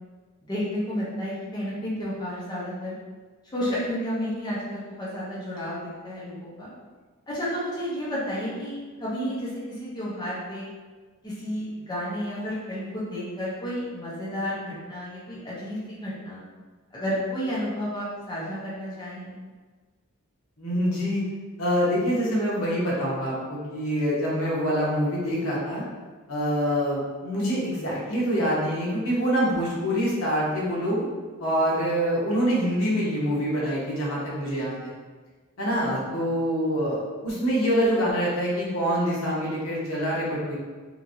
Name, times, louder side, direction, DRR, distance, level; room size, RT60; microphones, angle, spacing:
voice 1, 0.4-2.9 3.5-6.7 7.3-10.7 11.2-16.4 16.9-19.4, equal, 20° left, -8 dB, 0.7 m, -31 dB
voice 2, 20.6-21.2 21.6-25.8 26.3-31.0 31.4-35.0 35.6-40.6, equal, 70° left, -6 dB, 0.9 m, -25 dB
2.9 x 2.5 x 2.6 m, 1.4 s
head